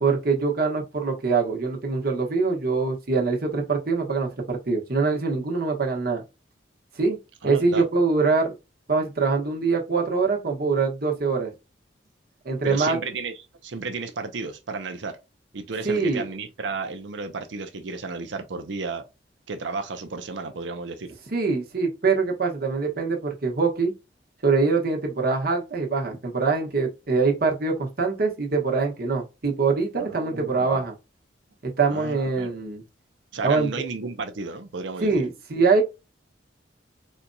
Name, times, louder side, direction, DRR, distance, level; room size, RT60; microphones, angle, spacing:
voice 1, 0.0-6.2 7.0-7.2 7.4-8.5 8.9-11.5 12.4-13.0 15.8-16.3 21.3-23.9 24.4-30.9 31.6-32.8 33.4-33.7 35.0-35.8, right 4 dB, 55° right, 1.2 m, -23 dB
voice 2, 7.4-7.8 12.6-15.2 15.5-19.0 19.5-21.1 30.0-30.8 31.9-32.6 33.3-35.2, right 4 dB, 80° right, 0.6 m, -33 dB
4.3 x 2.7 x 2.2 m
head